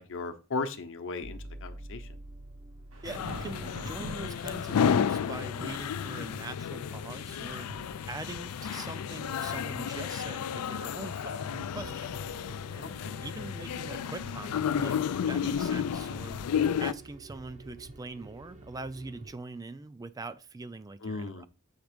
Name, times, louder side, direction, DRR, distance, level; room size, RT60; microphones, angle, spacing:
voice 1, 0.0-2.1 12.8-13.1 21.0-21.5, left 3 dB, 60° left, 0.8 m, -36 dB
sound 1, 1.2-19.3, right 2 dB, 35° right, 0.8 m, -50 dB
sound 2, 2.9-17.1, right 1 dB, 85° right, 3.0 m, -51 dB
voice 2, 3.0-12.1 12.7-21.5, right 3 dB, 15° right, 0.3 m, -43 dB
sound 3, 3.1-16.9, left 8 dB, 85° left, 0.4 m, -32 dB
7.2 x 3.5 x 5.1 m
head